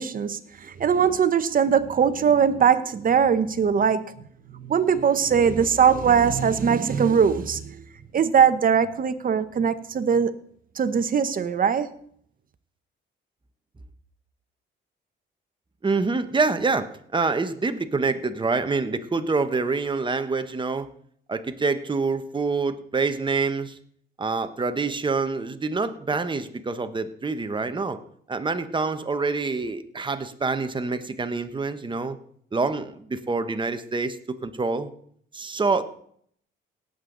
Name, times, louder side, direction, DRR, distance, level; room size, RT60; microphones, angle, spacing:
voice 1, 0.0-4.1 4.5-7.8 8.1-10.3 10.8-11.9, right 7 dB, 45° right, 1.1 m, -21 dB
voice 2, 15.8-20.9 21.3-23.8 24.2-28.0 28.3-32.2 32.5-34.9 35.3-35.8, right 4 dB, 25° right, 1.2 m, -26 dB
18.0 x 7.9 x 4.0 m
cardioid pair, 90°, 20 cm